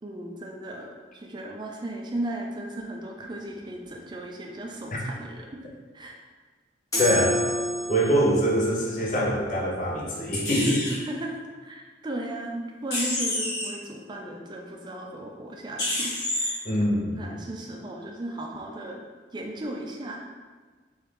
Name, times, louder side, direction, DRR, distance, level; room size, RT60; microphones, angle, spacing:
voice 1, 0.0-5.5 5.9-6.1 10.8-16.6 17.2-19.0 19.3-20.2, right 1 dB, 25° right, 0 dB, 0.4 m, -36 dB
sound 1, 6.9-8.4, equal, 20° left, 1.0 m, -28 dB
voice 2, 7.0-7.4 7.9-10.9 16.6-17.3, equal, 45° left, -3 dB, 0.7 m, -24 dB
sound 2, 10.3-10.9 12.9-13.7 15.8-16.5, left 1 dB, 70° left, 1.2 m, -28 dB
3.5 x 3.2 x 3.3 m, 1.4 s
head